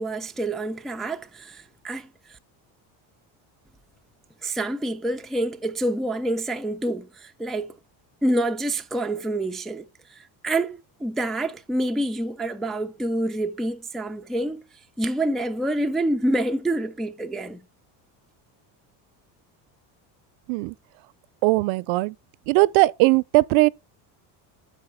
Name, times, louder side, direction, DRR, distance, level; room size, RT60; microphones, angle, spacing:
voice 1, 0.0-2.1 4.4-7.7 8.2-9.9 10.1-14.6 15.0-17.6, right 1 dB, ahead, 0.3 m, -27 dB
voice 2, 21.4-22.1 22.5-23.7, right 23 dB, 75° right, 0.5 m, -19 dB
7.7 x 4.9 x 4.3 m
cardioid pair, 115°, 47 cm